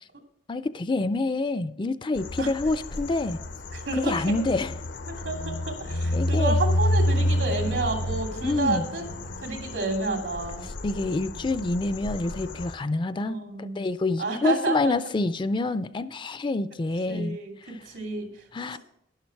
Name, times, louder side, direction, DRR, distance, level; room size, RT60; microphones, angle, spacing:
voice 1, 0.5-3.4 4.0-4.7 6.1-6.6 8.4-8.9 10.8-17.8 18.5-18.8, left 2 dB, 25° left, 0.4 m, -27 dB
sound 1, 2.2-12.7, left 1 dB, 80° left, 0.9 m, -29 dB
voice 2, 3.7-4.4 5.1-9.1 9.4-10.7 13.2-13.8 14.2-14.9 17.1-18.4, right 2 dB, 80° right, 2.7 m, -30 dB
11.5 x 11.0 x 4.6 m
head